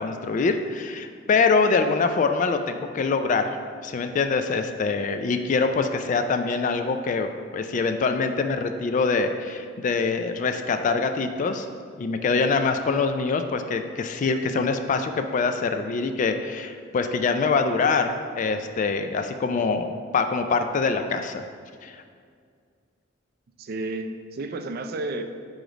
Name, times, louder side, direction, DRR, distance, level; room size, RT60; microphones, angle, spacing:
voice 1, 0.0-11.7 12.0-21.4 21.8-22.0, left 4 dB, 40° left, 7 dB, 0.3 m, -24 dB
voice 2, 23.6-25.2, right 2 dB, 50° right, 7 dB, 0.4 m, -32 dB
4.9 x 3.9 x 4.9 m, 2.1 s
head